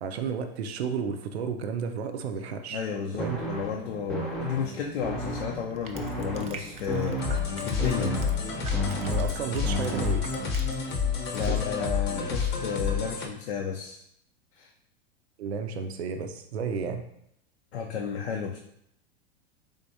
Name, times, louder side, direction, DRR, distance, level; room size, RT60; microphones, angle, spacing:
voice 1, 0.0-2.8 3.2-3.4 9.1-10.3 11.5-11.6 15.4-17.0, right 6 dB, 90° right, 6 dB, 0.5 m, -32 dB
voice 2, 2.7-7.2 7.6-8.2 11.3-14.0 14.6-14.7 17.7-18.6, left 7 dB, 85° left, 0 dB, 0.6 m, -32 dB
sound 1, 3.2-10.6, right 1 dB, 5° left, 0.8 m, -34 dB
Crushing, 5.7-11.0 11.2-11.5, right 5 dB, 20° right, 0.4 m, -45 dB
sound 2, 7.2-13.3, left 6 dB, 35° left, 0.7 m, -29 dB
3.8 x 3.5 x 2.7 m, 0.73 s
hypercardioid pair, 105°, 31 cm